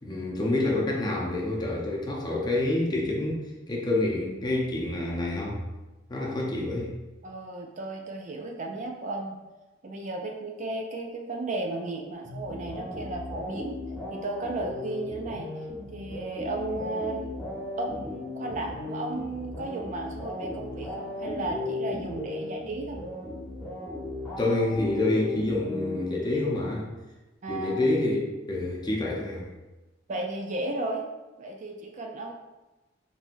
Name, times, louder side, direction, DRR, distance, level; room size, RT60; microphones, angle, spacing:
voice 1, 0.0-3.4 3.7-5.6 6.1-6.9 24.4-26.9 27.5-29.5, left 2 dB, 20° left, -3 dB, 0.7 m, -27 dB
voice 2, 7.2-9.4 9.8-13.8 14.1-15.5 15.9-17.3 17.8-23.0 27.4-27.8 30.1-31.1 31.4-32.3, right 2 dB, 40° right, 1 dB, 0.4 m, -34 dB
sound 1, 12.2-26.6, left 2 dB, 5° left, 1.1 m, -36 dB
4.4 x 3.4 x 2.6 m, 1.1 s
head